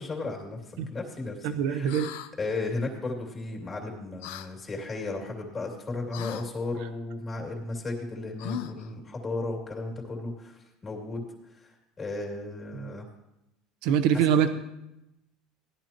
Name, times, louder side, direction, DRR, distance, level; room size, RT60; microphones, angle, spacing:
voice 1, 0.0-1.9 2.4-11.2 11.5-13.0 14.1-14.2, left 2 dB, 20° left, 0 dB, 2.5 m, -35 dB
voice 2, 1.4-2.1 12.7-12.9 13.8-14.5, right 8 dB, 70° right, 9 dB, 0.9 m, -24 dB
sound 1, 1.9-2.3 4.2-4.5 6.1-6.5 8.4-8.9, left 11 dB, 85° left, 0.6 m, -38 dB
16.5 x 11.0 x 3.0 m, 0.90 s
cardioid pair, 140°, 0 cm